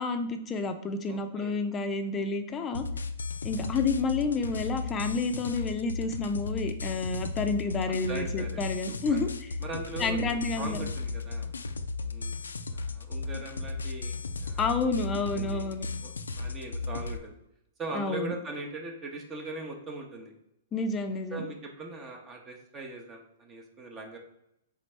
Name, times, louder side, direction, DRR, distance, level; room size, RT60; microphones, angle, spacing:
voice 1, 0.0-2.8 3.4-9.3 10.0-10.8 14.6-15.9 17.9-18.3 20.7-21.5, left 3 dB, 25° left, 7 dB, 0.4 m, -30 dB
voice 2, 1.1-1.6 8.1-9.2 9.6-10.2 10.5-11.5 12.0-12.4 12.7-14.7 15.3-15.7 16.0-17.3 17.8-20.3 21.3-24.2, right 2 dB, 25° right, 2 dB, 0.7 m, -40 dB
sound 1, 2.7-17.2, left 3 dB, 90° left, 0.3 m, -35 dB
4.0 x 3.5 x 3.2 m, 0.82 s
hypercardioid pair, 120°, 0 cm